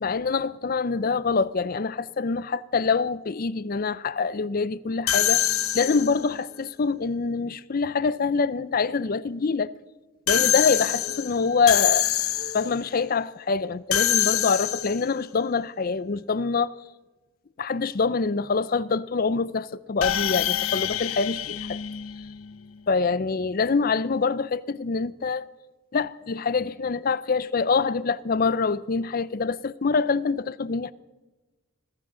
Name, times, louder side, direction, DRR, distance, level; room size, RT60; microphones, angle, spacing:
voice 1, 0.0-5.4 5.7-9.7 10.3-12.1 12.5-16.7 17.6-21.8 22.9-25.5 25.9-30.9, left 4 dB, 45° left, 0.5 m, -25 dB
sound 1, 5.1-6.3 10.3-12.8 13.9-15.2 20.0-22.6, left 12 dB, 85° left, 0.8 m, -25 dB
21.5 x 14.5 x 3.8 m
head